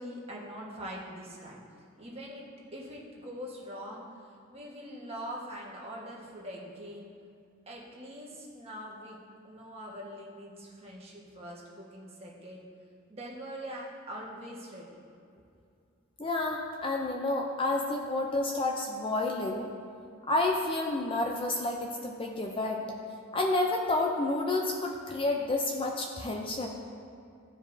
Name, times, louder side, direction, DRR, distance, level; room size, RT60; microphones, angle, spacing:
voice 1, 0.0-1.6 2.0-4.0 4.5-7.1 7.7-9.2 9.4-12.6 13.1-14.9, equal, 30° right, -4 dB, 1.4 m, -43 dB
voice 2, 16.2-19.7 20.3-22.8 23.3-26.7, left 2 dB, 25° left, 1 dB, 0.5 m, -30 dB
14.5 x 5.0 x 2.7 m, 2.4 s
head